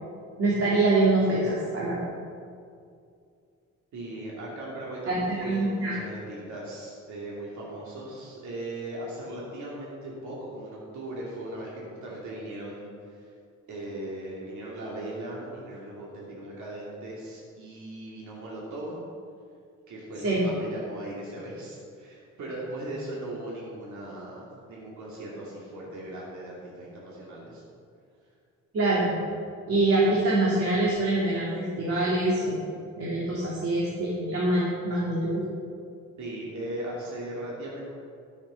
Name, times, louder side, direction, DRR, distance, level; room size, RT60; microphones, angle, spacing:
voice 1, 0.4-2.0 5.1-5.9 20.2-20.4 28.7-29.1 29.7-32.6 33.0-35.4, right 2 dB, 50° right, -6 dB, 2.7 m, -24 dB
voice 2, 3.9-13.3 13.7-19.0 19.9-27.6 33.3-33.4 36.2-37.8, right 1 dB, 70° right, -5 dB, 2.7 m, -38 dB
13.0 x 7.2 x 5.7 m, 2.3 s
cardioid pair, 90°, 30 cm